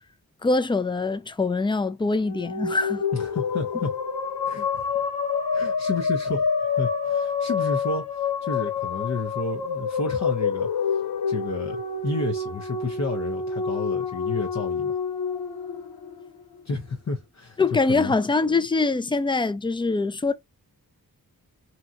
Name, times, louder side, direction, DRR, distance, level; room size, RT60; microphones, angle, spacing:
voice 1, 0.4-3.0 17.6-20.3, left 3 dB, 15° left, 0.4 m, -23 dB
sound 1, 2.2-16.6, left 5 dB, 80° left, 0.7 m, -27 dB
voice 2, 3.1-3.9 4.4-5.0 5.5-6.5 6.8-11.0 11.3-14.9 16.7-18.1, left 3 dB, 50° left, 0.7 m, -31 dB
2.8 x 2.2 x 2.5 m
cardioid pair, 55°, 36 cm